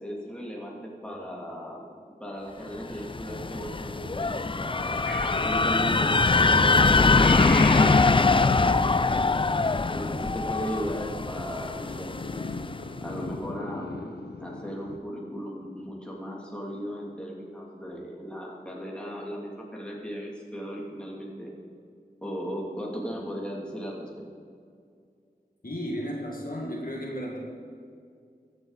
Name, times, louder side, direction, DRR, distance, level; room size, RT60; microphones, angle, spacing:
voice 1, 0.0-5.0 5.4-9.2 9.9-12.2 13.0-21.5 22.2-24.1, equal, 5° left, -3 dB, 2.7 m, -37 dB
sound 1, 2.9-12.7, left 3 dB, 30° left, 0.4 m, -23 dB
Purr / Meow, 5.0-15.0, left 3 dB, 85° left, 0.8 m, -39 dB
voice 2, 25.6-27.4, equal, 60° left, -2 dB, 2.1 m, -33 dB
14.5 x 9.4 x 4.1 m, 2.3 s
wide cardioid pair, 40°, 17 cm